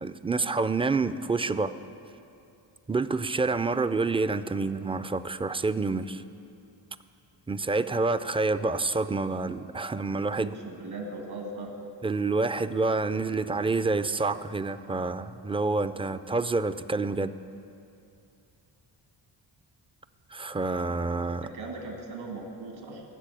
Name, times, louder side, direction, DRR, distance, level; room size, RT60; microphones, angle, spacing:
voice 1, 0.0-1.7 2.9-6.2 7.5-10.6 12.0-17.4 20.3-21.5, right 3 dB, 15° right, 12 dB, 0.3 m, -28 dB
voice 2, 10.4-11.8 21.4-23.0, right 2 dB, 75° right, 0 dB, 2.3 m, -39 dB
14.5 x 6.6 x 9.2 m, 2.6 s
cardioid pair, 65°, 48 cm